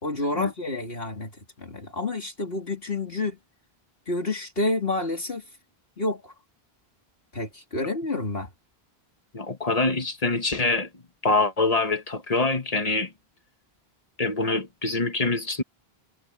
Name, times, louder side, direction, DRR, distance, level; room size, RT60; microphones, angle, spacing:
voice 1, 0.0-3.4 4.1-5.4 6.0-6.3 7.3-8.5, left 2 dB, 65° left, 3.3 m, -29 dB
voice 2, 9.3-10.9 11.2-13.1 14.2-15.6, left 3 dB, 35° left, 1.5 m, -25 dB
omnidirectional pair, 1.1 m